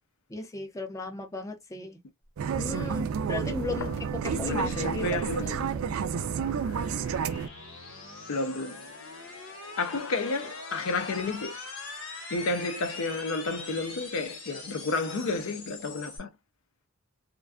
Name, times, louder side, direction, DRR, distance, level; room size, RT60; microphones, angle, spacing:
voice 1, 0.3-2.0 2.6-5.3, left 3 dB, 15° left, 0.5 m, -36 dB
sound 1, 2.4-7.5, right 7 dB, 80° right, 0.3 m, -30 dB
sound 2, 3.3-16.2, left 2 dB, 90° left, 1.2 m, -43 dB
voice 2, 4.3-5.7 8.3-8.9 9.8-11.6 12.3-16.3, left 3 dB, 70° left, 0.5 m, -31 dB
2.5 x 2.2 x 2.2 m
head